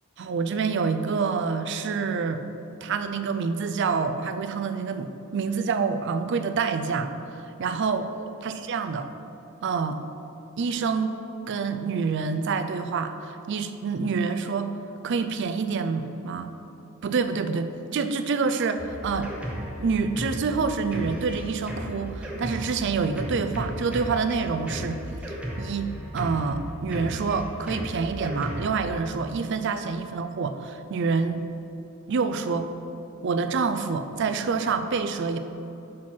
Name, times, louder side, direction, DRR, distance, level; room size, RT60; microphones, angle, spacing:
voice 1, 0.2-2.4 2.8-8.1 8.4-9.1 9.6-10.0 10.6-11.2 11.5-14.7 15.0-16.5 17.0-19.3 19.8-25.0 25.6-31.4 32.1-32.7 33.2-35.4, right 5 dB, 55° right, 9 dB, 0.4 m, -27 dB
Drum kit, 18.8-28.9, equal, 5° right, 0.8 m, -35 dB
6.2 x 4.4 x 5.8 m, 2.9 s
head